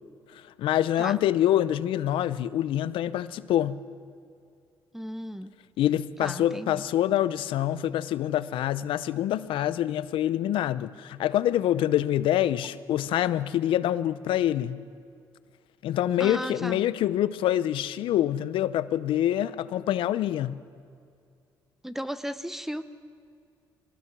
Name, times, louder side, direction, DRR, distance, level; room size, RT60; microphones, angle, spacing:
voice 1, 0.3-3.8 5.8-14.8 15.8-20.6, left 12 dB, 80° left, 0.7 m, -26 dB
voice 2, 4.9-5.5 6.2-6.8 16.2-16.8 21.8-22.8, equal, 5° right, 0.9 m, -35 dB
23.0 x 18.5 x 6.1 m
cardioid pair, 80°, 9 cm